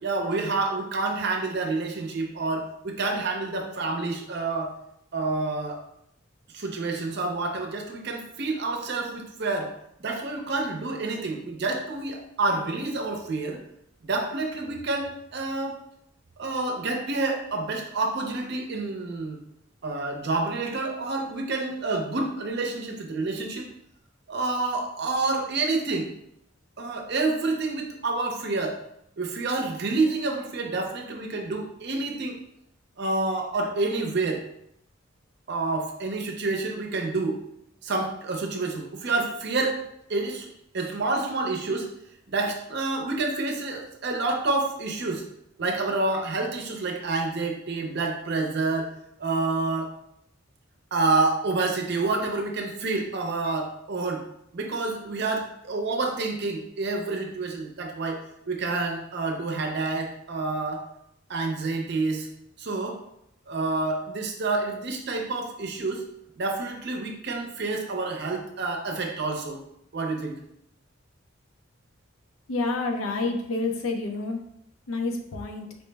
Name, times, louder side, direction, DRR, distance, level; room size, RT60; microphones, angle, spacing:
voice 1, 0.0-4.7 5.1-5.8 6.5-9.7 10.0-13.6 14.0-15.8 16.4-19.4 19.8-23.7 24.3-26.1 26.8-28.7 29.2-32.4 33.0-34.4 35.5-37.4 37.8-39.8 40.1-40.5 40.7-41.9 42.3-45.2 45.6-48.9 49.2-49.9 50.9-54.2 54.5-58.2 58.5-60.8 61.3-62.3 62.6-63.0 63.5-66.0 66.4-69.6 69.9-70.3, right 3 dB, 55° right, 2 dB, 0.6 m, -28 dB
voice 2, 72.5-74.4 74.9-75.7, left 3 dB, 90° left, 3 dB, 0.6 m, -28 dB
4.3 x 2.0 x 3.3 m, 0.75 s
head